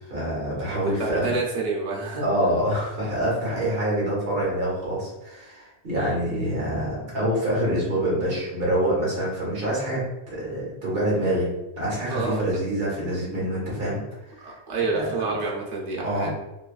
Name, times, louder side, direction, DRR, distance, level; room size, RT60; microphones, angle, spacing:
voice 1, 0.1-1.3 2.2-10.0 10.3-14.0 14.3-14.6 14.9-15.1 16.0-16.3, right 1 dB, 50° right, -6 dB, 1.3 m, -26 dB
voice 2, 0.7-2.2 6.0-6.1 12.1-12.4 14.4-16.3, right 3 dB, 85° right, -2 dB, 1.1 m, -28 dB
3.0 x 2.3 x 2.3 m, 0.97 s
omnidirectional pair, 1.2 m